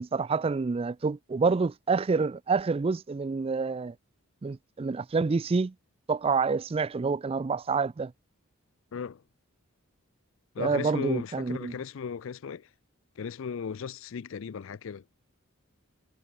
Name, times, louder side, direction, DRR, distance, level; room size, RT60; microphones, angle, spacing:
voice 1, 0.0-3.9 4.4-5.7 6.1-8.1 10.6-11.7, right 4 dB, 25° right, 0.3 m, -27 dB
voice 2, 8.9-9.2 10.5-12.7 13.2-15.0, left 6 dB, 60° left, 0.4 m, -36 dB
head